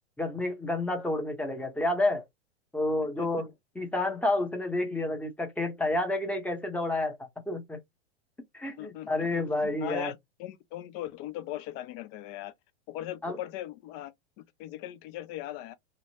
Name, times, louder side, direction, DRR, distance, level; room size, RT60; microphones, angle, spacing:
voice 1, 0.2-2.2 2.7-3.5 3.7-7.2 7.5-7.8 8.5-10.1 13.2-13.4, left 2 dB, 5° left, 0.8 m, -29 dB
voice 2, 3.0-3.5 8.6-12.5 12.9-14.1 14.4-15.7, left 13 dB, 35° left, 0.4 m, -39 dB
2.8 x 2.1 x 2.7 m
hypercardioid pair, 105°, 34 cm